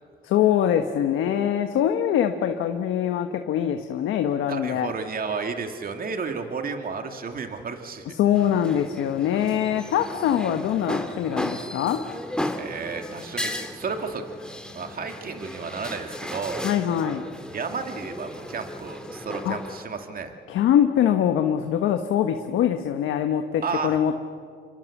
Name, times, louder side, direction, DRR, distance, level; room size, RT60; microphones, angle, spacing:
voice 1, 0.2-4.9 8.2-12.1 16.6-17.2 19.4-19.6 20.5-24.1, left 10 dB, 85° left, 6 dB, 1.3 m, -23 dB
voice 2, 4.5-8.2 12.6-14.2 14.7-16.7 17.5-20.3 23.6-24.0, right 5 dB, 45° right, 5 dB, 2.4 m, -32 dB
sound 1, 8.3-19.8, left 1 dB, 5° left, 2.4 m, -35 dB
28.5 x 24.0 x 7.3 m, 2.1 s
cardioid pair, 90°, 20 cm